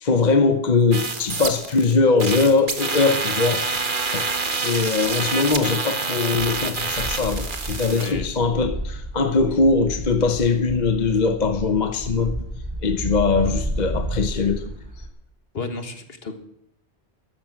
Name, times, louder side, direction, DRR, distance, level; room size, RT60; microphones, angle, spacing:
voice 1, 0.0-3.6 4.1-4.2 4.6-12.4 12.8-14.6, left 4 dB, 45° left, 1.0 m, -21 dB
sound 1, 0.9-1.9 2.2-8.1, right 4 dB, 50° right, 1.5 m, -27 dB
sound 2, 6.6-15.1, right 1 dB, 20° right, 5.6 m, -31 dB
voice 2, 7.9-8.3 13.4-13.7 15.5-16.4, left 3 dB, 60° left, 1.8 m, -34 dB
13.5 x 11.0 x 7.7 m
omnidirectional pair, 1.1 m